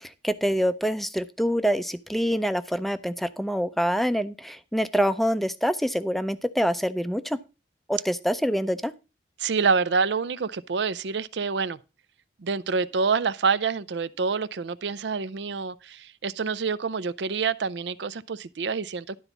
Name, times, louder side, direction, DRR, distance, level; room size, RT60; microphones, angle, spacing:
voice 1, 0.0-7.4 7.9-8.9, equal, ahead, 0.5 m, -26 dB
voice 2, 9.4-11.8 12.4-19.2, right 5 dB, 75° right, 0.5 m, -27 dB
12.0 x 4.0 x 7.0 m
head